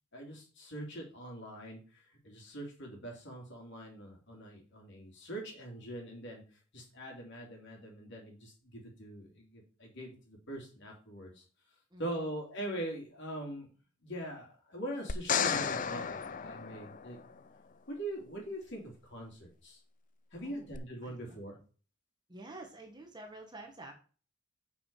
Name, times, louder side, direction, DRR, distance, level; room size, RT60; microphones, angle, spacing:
voice 1, 0.1-6.4 6.7-11.4 12.0-13.7 14.0-17.2 17.9-19.8 20.3-21.6, right 1 dB, 55° left, 0 dB, 3.3 m, -42 dB
sound 1, 15.1-17.4 20.7-20.8, left 7 dB, 35° left, 0.5 m, -33 dB
voice 2, 20.4-20.7 21.0-21.4 22.3-23.9, right 2 dB, 20° right, 3 dB, 1.4 m, -49 dB
8.1 x 5.5 x 4.9 m, 0.37 s
head